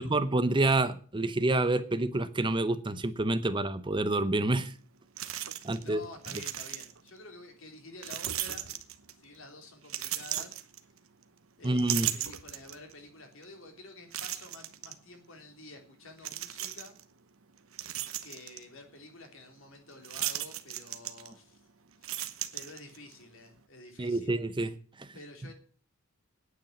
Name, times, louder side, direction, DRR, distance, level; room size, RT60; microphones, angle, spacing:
voice 1, 0.0-4.7 5.6-6.0 11.6-12.1 24.0-25.1, right 2 dB, 20° right, 0.7 m, -28 dB
sound 1, 4.6-4.7 5.2-5.9 6.1-7.1 8.0-9.3 9.8-11.2 11.6-12.9 13.4-13.5 14.1-14.9 16.2-17.0 17.5-18.6 20.0-21.6 21.9-23.1, right 12 dB, 70° right, 1.1 m, -36 dB
voice 2, 5.8-8.8 9.2-10.6 11.6-17.0 18.2-21.6 22.0-24.4 25.1-25.5, left 2 dB, 65° left, 3.2 m, -50 dB
9.7 x 8.8 x 8.8 m
head